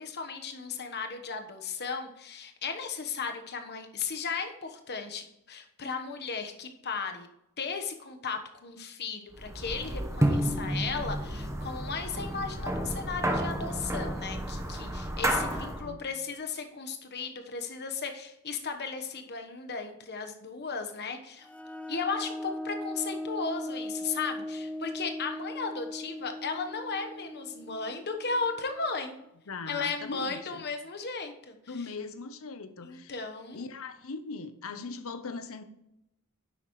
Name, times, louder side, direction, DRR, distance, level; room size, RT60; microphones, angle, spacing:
voice 1, 0.0-7.3 7.6-21.5 21.9-29.2 29.7-31.8 32.8-33.6, left 5 dB, 50° left, 6 dB, 1.1 m, -35 dB
sound 1, 9.4-15.9, right 1 dB, 15° right, 1.0 m, -31 dB
voice 2, 15.5-16.0 29.5-30.6 31.7-33.1 33.5-35.6, left 4 dB, 65° left, 11 dB, 0.8 m, -40 dB
sound 2, 21.4-28.9, left 1 dB, 5° left, 0.3 m, -39 dB
10.0 x 7.8 x 3.1 m, 0.87 s
head